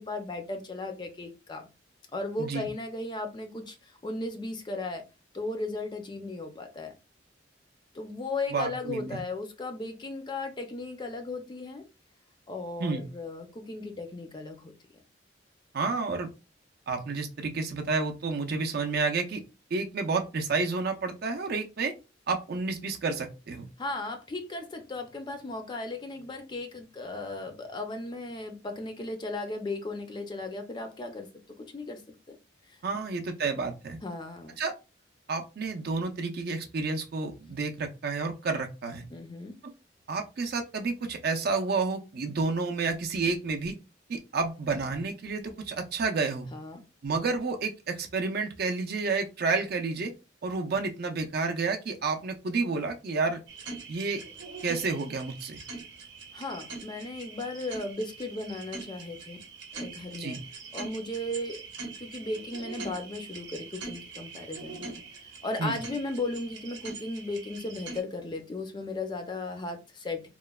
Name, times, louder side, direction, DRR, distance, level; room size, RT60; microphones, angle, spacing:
voice 1, 0.0-1.7 2.1-5.0 5.3-6.9 7.9-11.8 12.5-14.7 23.8-31.3 31.6-32.0 32.3-32.4 32.7-32.8 34.0-34.6 39.1-39.5 46.5-46.8 56.3-59.4 59.7-60.4 60.7-65.0 65.4-70.3, left 2 dB, 25° left, 5 dB, 0.4 m, -36 dB
voice 2, 8.5-9.2 12.8-13.0 15.7-16.3 16.9-19.4 19.7-21.9 22.3-23.7 32.8-34.0 34.6-34.7 35.3-39.1 39.6-39.7 40.1-43.7 44.1-46.5 47.0-50.1 50.4-53.4 53.9-54.2 54.6-55.6 60.2-60.4 65.6-65.8, right 4 dB, 55° right, 5 dB, 0.5 m, -30 dB
sound 1, 53.5-68.0, right 4 dB, 85° right, 0.7 m, -43 dB
3.0 x 2.0 x 2.2 m, 0.29 s
head